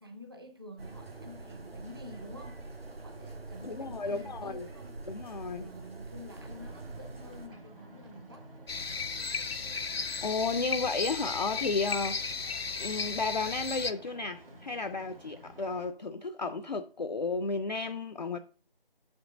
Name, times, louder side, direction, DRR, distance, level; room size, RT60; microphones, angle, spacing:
voice 1, 0.0-2.6 3.0-4.9 5.6-8.5, left 1 dB, 25° right, 0.6 m, -49 dB
sound 1, 0.8-7.5, right 2 dB, 90° right, 1.8 m, -45 dB
voice 2, 3.6-4.7 5.1-5.7 10.2-12.2 12.8-18.4, left 4 dB, 50° left, 0.4 m, -33 dB
Ocean, 6.3-15.9, right 1 dB, 70° right, 2.0 m, -52 dB
sound 2, 8.7-13.9, left 5 dB, 85° left, 0.8 m, -35 dB
6.8 x 5.2 x 5.0 m
figure-of-eight pair, 165°, 29 cm